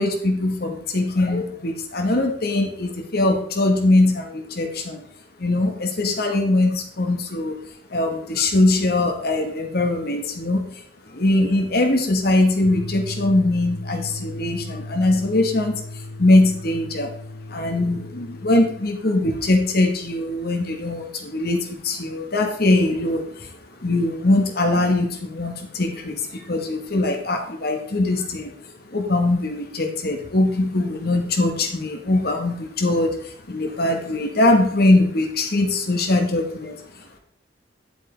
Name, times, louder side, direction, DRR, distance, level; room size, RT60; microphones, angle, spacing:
voice 1, 0.0-5.0 5.4-7.6 7.9-17.1 17.5-37.2, left 2 dB, 55° left, 3 dB, 1.3 m, -21 dB
sound 1, 12.6-18.8, left 1 dB, 80° left, 1.8 m, -36 dB
10.0 x 8.1 x 3.3 m, 0.67 s
head